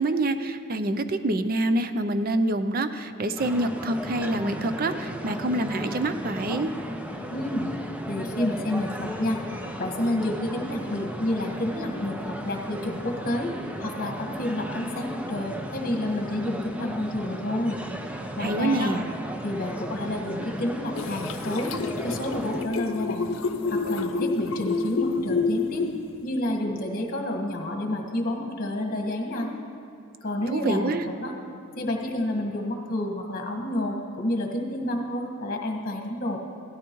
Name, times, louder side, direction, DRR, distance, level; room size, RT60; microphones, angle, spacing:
voice 1, 0.0-6.7 18.4-19.0 30.5-31.0, right 2 dB, 45° right, 9 dB, 0.5 m, -26 dB
sound 1, 3.4-22.6, equal, 5° right, 0.6 m, -35 dB
voice 2, 7.3-7.7 8.1-9.4 9.8-13.5 13.8-17.8 18.3-18.9 19.4-21.7 22.0-23.3 23.7-25.9 26.2-29.5 30.2-30.9 31.2-31.3 31.8-36.4, left 1 dB, 45° left, 1 dB, 1.6 m, -29 dB
sound 2, 21.0-26.3, left 4 dB, 80° left, 0.6 m, -29 dB
17.0 x 13.0 x 3.1 m, 2.6 s
head